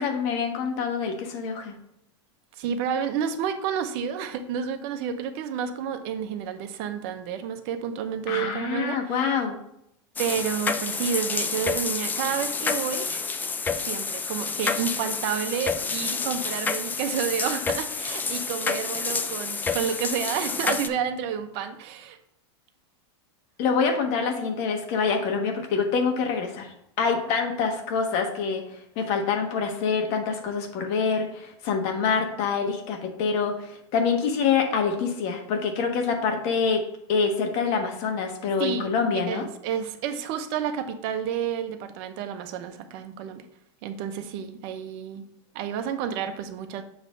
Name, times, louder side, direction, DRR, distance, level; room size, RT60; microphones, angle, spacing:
voice 1, 0.0-1.8 8.3-9.6 23.6-36.8 37.1-39.5, left 5 dB, 50° left, 4 dB, 1.3 m, -26 dB
voice 2, 2.6-9.3 10.2-13.3 13.7-22.2 38.6-38.9 39.3-43.5 43.8-45.3 45.5-46.8, right 8 dB, 50° right, 8 dB, 0.8 m, -30 dB
sound 1, 10.2-20.9, left 5 dB, 10° left, 0.3 m, -29 dB
7.3 x 3.1 x 5.2 m, 0.77 s
supercardioid pair, 130°, 15 cm